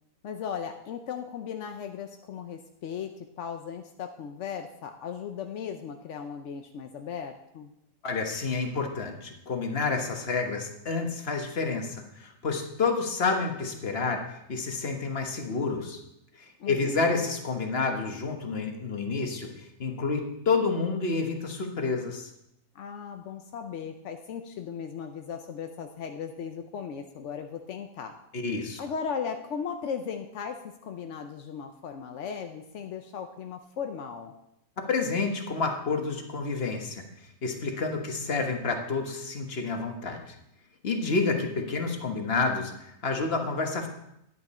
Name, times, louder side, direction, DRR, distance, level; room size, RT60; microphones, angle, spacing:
voice 1, 0.2-7.7 16.6-17.3 22.7-28.1 28.8-34.3, left 7 dB, 65° left, 5 dB, 0.7 m, -37 dB
voice 2, 8.0-14.2 14.5-16.0 16.4-22.3 28.3-28.8 34.9-37.0 37.4-40.3 40.8-43.9, left 4 dB, 40° left, 3 dB, 1.4 m, -29 dB
10.5 x 9.8 x 4.3 m, 0.80 s
omnidirectional pair, 1.9 m